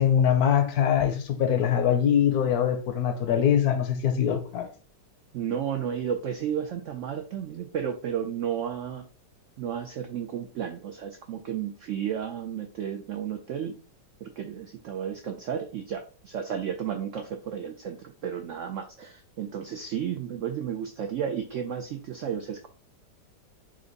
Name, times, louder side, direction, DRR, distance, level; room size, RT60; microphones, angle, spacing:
voice 1, 0.0-4.7, left 9 dB, 70° left, 1.0 m, -23 dB
voice 2, 5.3-9.1 9.6-13.8 14.2-22.7, right 8 dB, 80° right, 0.6 m, -33 dB
4.4 x 2.5 x 3.9 m
omnidirectional pair, 1.9 m